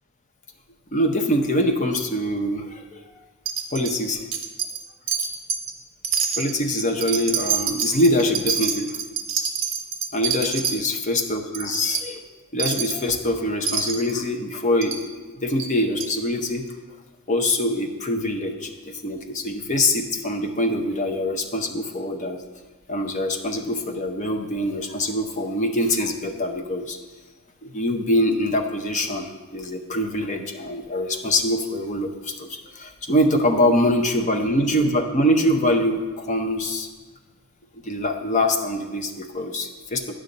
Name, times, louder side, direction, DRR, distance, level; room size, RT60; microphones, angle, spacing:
voice 1, 0.9-3.0 3.7-4.3 6.4-9.0 10.1-12.2 12.5-15.0 15.3-16.6 17.3-22.4 22.9-27.0 27.6-36.9 37.8-40.1, left 1 dB, 35° left, 4 dB, 0.7 m, -24 dB
Wind chime, 3.5-4.0 4.3-4.8 5.1-5.7 6.0-10.8 11.2-11.3 11.5-12.0 12.6-13.0 13.7-14.1 14.8-15.0 15.6-15.7 16.0-16.1, right 6 dB, 60° right, 0.8 m, -26 dB
9.1 x 6.3 x 4.0 m, 1.3 s
head